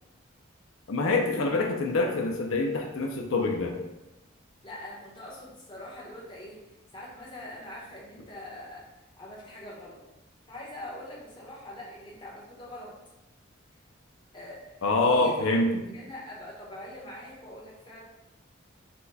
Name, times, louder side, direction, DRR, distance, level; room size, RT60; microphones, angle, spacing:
voice 1, 0.9-3.7 14.8-15.8, left 2 dB, 85° left, 2 dB, 0.5 m, -25 dB
voice 2, 4.6-8.9 9.2-10.0 10.4-13.0 14.3-18.0, left 1 dB, 25° left, -5 dB, 1.0 m, -43 dB
4.3 x 2.2 x 4.1 m, 0.97 s
head